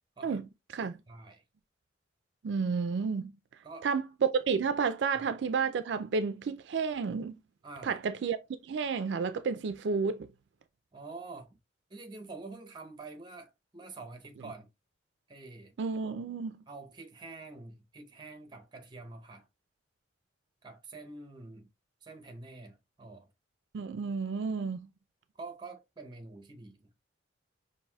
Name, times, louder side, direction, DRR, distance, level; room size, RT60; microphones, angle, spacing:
voice 1, 1.1-1.4 3.6-3.9 5.1-5.2 7.6-8.0 10.9-11.6 11.9-14.7 15.3-15.7 16.7-19.5 20.6-21.7 22.0-23.3 25.4-26.9, right 3 dB, 25° right, 0.8 m, -47 dB
voice 2, 2.4-3.3 3.8-7.4 7.8-10.3 15.8-16.6 23.7-24.9, right 5 dB, 75° right, 0.4 m, -31 dB
5.5 x 2.6 x 2.2 m
head